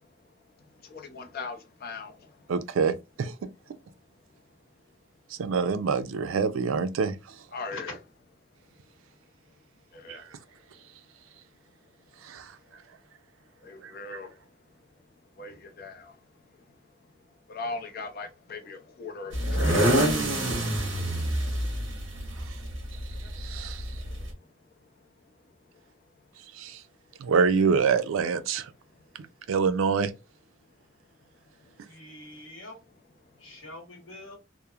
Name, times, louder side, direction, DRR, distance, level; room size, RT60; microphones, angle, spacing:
voice 1, 0.8-2.5 7.5-8.0 9.9-10.3 12.7-12.8 13.6-14.4 15.4-16.2 17.5-20.0 24.1-24.3 31.6-31.7, left 3 dB, 50° left, 0.6 m, -40 dB
voice 2, 2.5-3.5 5.4-7.2 10.1-10.2 12.2-12.5 13.8-14.2 22.4-22.5 23.4-23.8 26.5-26.8 27.2-28.7 29.5-30.1, right 5 dB, 85° right, 0.4 m, -26 dB
sound 1, 19.3-24.3, right 1 dB, 65° right, 0.8 m, -27 dB
voice 3, 31.8-32.8 33.4-34.4, left 2 dB, 85° left, 1.0 m, -43 dB
2.9 x 2.0 x 2.3 m
head